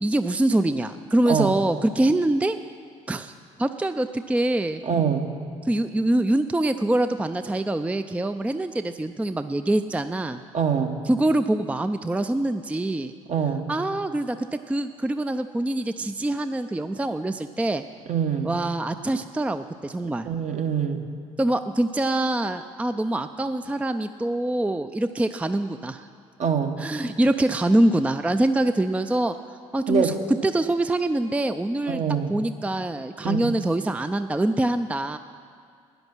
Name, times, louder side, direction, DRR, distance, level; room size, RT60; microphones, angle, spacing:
voice 1, 0.0-2.6 3.1-3.3 3.6-4.8 5.6-10.4 11.1-13.1 13.7-17.8 18.4-20.3 21.4-26.1 26.8-29.4 29.7-30.1 30.4-32.0 32.3-35.2, right 1 dB, 10° right, 10 dB, 0.4 m, -24 dB
voice 2, 4.8-5.3 10.5-11.0 13.3-13.7 18.1-18.5 20.3-21.1 26.4-26.8 29.9-30.2 31.9-32.3 33.2-33.5, right 7 dB, 50° right, 5 dB, 1.2 m, -24 dB
13.0 x 9.6 x 6.1 m, 2.2 s
hypercardioid pair, 50°, 16 cm